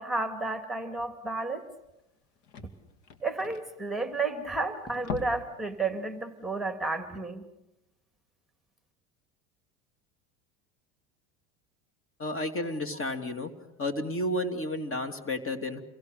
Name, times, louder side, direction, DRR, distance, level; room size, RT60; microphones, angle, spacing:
voice 1, 0.0-1.6 3.2-7.4, right 3 dB, ahead, 7 dB, 2.3 m, -32 dB
sound 1, 1.5-1.6 1.8-1.9 2.1-4.5 4.8-5.6 5.9-6.1 6.5-6.6, left 6 dB, 70° left, 2.7 m, -41 dB
voice 2, 12.2-13.5 13.8-15.8, left 1 dB, 30° left, 8 dB, 2.8 m, -31 dB
28.5 x 23.0 x 6.7 m, 0.92 s
supercardioid pair, 95°, 41 cm